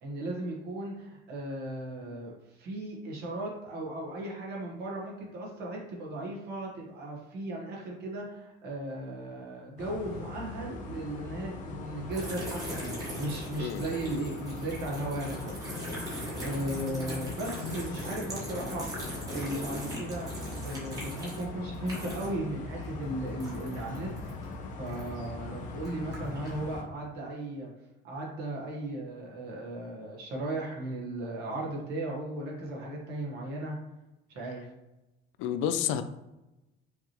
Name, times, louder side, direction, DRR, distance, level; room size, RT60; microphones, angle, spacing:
voice 1, 0.0-15.9 16.4-18.9 19.3-20.3 20.6-24.1 24.8-27.7 28.0-33.8 34.3-34.7, right 1 dB, 55° right, -2 dB, 1.3 m, -36 dB
sound 1, 9.8-26.8, left 3 dB, 40° left, 0.6 m, -40 dB
sound 2, 12.1-22.5 22.7-25.3 25.8-26.6, equal, 20° right, 1.3 m, -40 dB
voice 2, 35.4-36.0, left 9 dB, 80° left, 10 dB, 0.5 m, -29 dB
5.6 x 3.0 x 3.0 m, 0.98 s
cardioid pair, 175°, 20 cm